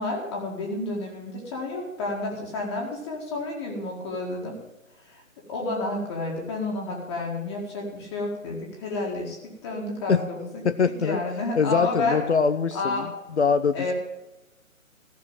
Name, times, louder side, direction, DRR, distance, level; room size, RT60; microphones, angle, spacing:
voice 1, 0.0-4.5 5.0-5.2 5.5-10.6 11.0-12.2 12.7-13.1 13.7-13.9, left 2 dB, 20° left, -2 dB, 1.9 m, -30 dB
voice 2, 10.6-11.2 11.6-13.1 13.4-13.9, left 5 dB, 55° left, 11 dB, 0.7 m, -23 dB
14.5 x 6.5 x 8.8 m, 0.99 s
figure-of-eight pair, 145°, 42 cm